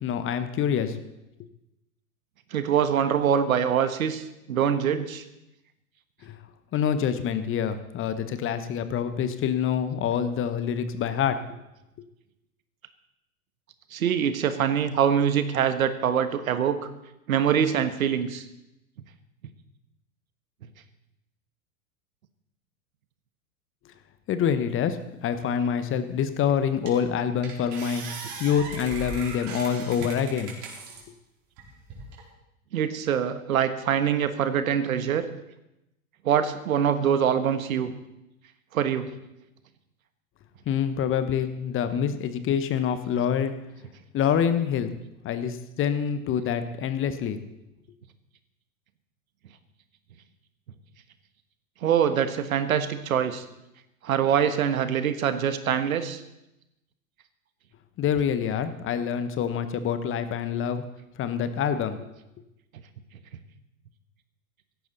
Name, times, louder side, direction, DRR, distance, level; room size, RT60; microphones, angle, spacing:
voice 1, 0.0-1.0 6.2-6.4 6.7-11.4 24.3-28.0 28.4-30.5 40.7-43.5 44.1-44.9 45.2-47.4 58.0-60.8 61.2-62.0, left 8 dB, 30° left, 11 dB, 1.2 m, -26 dB
voice 2, 2.5-5.2 13.9-16.9 17.3-18.4 32.7-35.3 36.2-37.9 38.7-39.1 51.8-53.4 54.0-56.2, right 8 dB, 65° right, 10 dB, 1.5 m, -24 dB
sound 1, 26.2-26.3 26.9-27.1 27.4-31.0 31.6-32.2, right 3 dB, 40° right, 4.5 m, -39 dB
17.0 x 14.0 x 4.1 m, 0.91 s
figure-of-eight pair, 90°, 45 cm